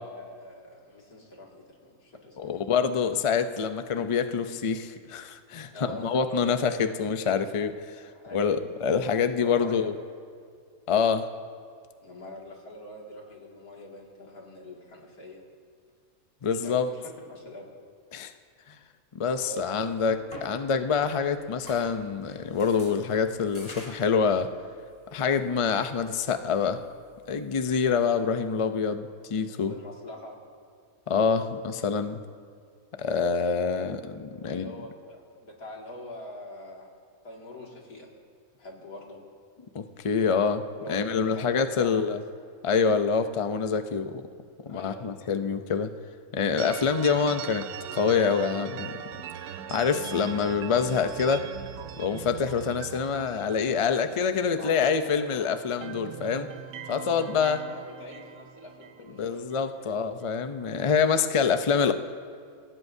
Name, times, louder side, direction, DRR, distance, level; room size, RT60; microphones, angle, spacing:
voice 1, 0.0-2.6 5.7-6.6 8.1-8.5 9.3-9.9 12.0-15.4 16.5-17.7 19.3-19.9 29.6-30.4 34.4-36.9 37.2-38.1 38.5-39.2 40.7-42.2 44.7-45.2 54.6-55.5 57.1-60.0, left 1 dB, 85° left, -2 dB, 2.8 m, -44 dB
voice 2, 2.4-7.8 8.3-9.9 10.9-11.3 16.4-16.9 18.1-18.3 19.2-24.5 25.1-26.8 27.3-29.7 31.1-32.2 33.0-34.7 39.7-40.6 40.9-42.2 42.6-44.2 44.7-45.9 46.3-48.9 49.7-51.5 52.0-56.5 56.9-57.6 59.2-61.9, left 6 dB, 50° left, 9 dB, 0.3 m, -26 dB
sound 1, 20.0-28.2, equal, 30° left, 4.4 m, -50 dB
sound 2, 46.6-55.3 55.6-59.7, right 9 dB, 85° right, 1.1 m, -41 dB
25.0 x 17.0 x 2.7 m, 2.2 s
omnidirectional pair, 1.5 m